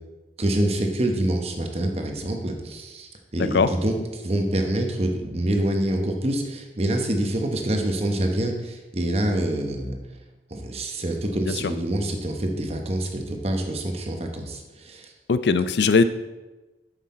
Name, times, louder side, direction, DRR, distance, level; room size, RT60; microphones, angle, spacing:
voice 1, 0.4-10.0 10.5-15.1, right 1 dB, 35° right, 3 dB, 0.9 m, -26 dB
voice 2, 3.4-3.7 11.6-11.7 15.3-16.0, left 4 dB, 70° left, 12 dB, 0.4 m, -19 dB
7.5 x 6.5 x 4.2 m, 1.1 s
head